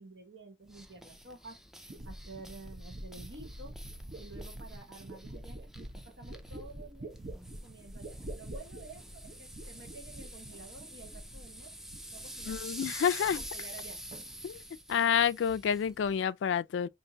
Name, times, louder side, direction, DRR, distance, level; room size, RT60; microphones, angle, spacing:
voice 1, 0.0-1.6 2.0-3.7 4.2-7.1 7.6-11.7 12.1-12.6 13.4-14.0, right 3 dB, 70° right, 1.0 m, -51 dB
sound 1, 0.7-16.2, right 1 dB, ahead, 0.4 m, -48 dB
sound 2, 1.1-1.2 1.9-11.6 11.8-12.7 13.0-13.9 14.1-14.6, right 1 dB, 40° right, 0.9 m, -46 dB
voice 2, 12.5-13.4 14.4-14.6 14.9-16.9, left 7 dB, 85° left, 0.3 m, -29 dB
4.4 x 2.6 x 2.7 m
head